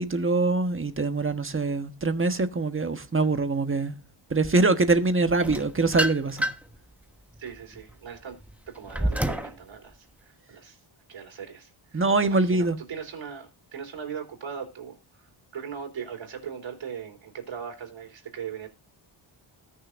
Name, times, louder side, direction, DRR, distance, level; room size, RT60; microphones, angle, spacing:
voice 1, 0.0-4.0 4.3-6.5 11.9-12.8, right 3 dB, 25° right, 1.3 m, -24 dB
sound 1, 5.4-6.8 7.3-9.6, right 1 dB, 5° right, 1.2 m, -29 dB
voice 2, 7.4-8.4 8.7-10.8 11.1-18.7, right 7 dB, 65° right, 4.2 m, -39 dB
20.5 x 6.8 x 2.6 m
cardioid pair, 105°, 48 cm